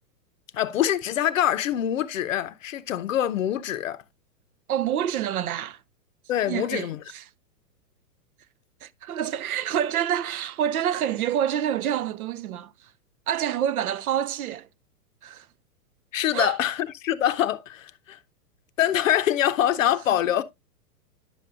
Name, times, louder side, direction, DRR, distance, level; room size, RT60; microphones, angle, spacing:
voice 1, 0.5-4.0 6.3-7.0 16.1-18.2 18.8-20.4, left 11 dB, 55° left, 0.7 m, -24 dB
voice 2, 4.7-5.8 6.5-7.2 8.8-12.7 13.3-14.7 15.2-15.5 16.3-16.6, right 10 dB, 65° right, 0.6 m, -27 dB
10.5 x 6.1 x 2.4 m
hypercardioid pair, 165°, 48 cm